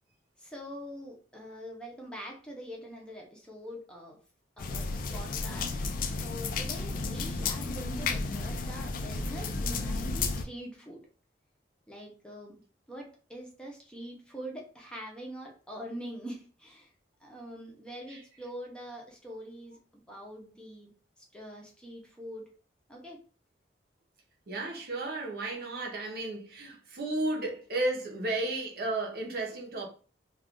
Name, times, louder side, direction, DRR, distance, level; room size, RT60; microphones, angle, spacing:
voice 1, 0.4-4.2 4.6-5.8 6.2-11.0 11.9-12.6 12.9-16.9 17.2-20.9 21.2-22.5 22.9-23.2, equal, 5° left, 0.6 m, -44 dB
sound 1, 4.6-10.5, left 3 dB, 50° left, 0.3 m, -33 dB
voice 2, 24.5-29.9, right 2 dB, 60° right, 0.7 m, -33 dB
2.4 x 2.3 x 3.6 m
head